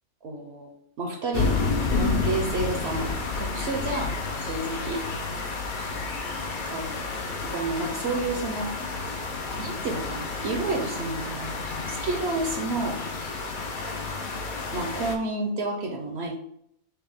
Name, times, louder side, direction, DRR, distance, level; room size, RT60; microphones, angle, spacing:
voice 1, 0.2-0.7 1.0-3.1 3.4-4.1 4.4-5.0 6.7-7.0 7.4-8.7 9.6-11.6 11.9-13.0 14.7-16.3, right 2 dB, 65° right, 1 dB, 0.8 m, -30 dB
sound 1, 1.3-15.2, left 4 dB, 50° left, 0.6 m, -30 dB
5.7 x 2.4 x 3.4 m, 0.73 s
omnidirectional pair, 1.3 m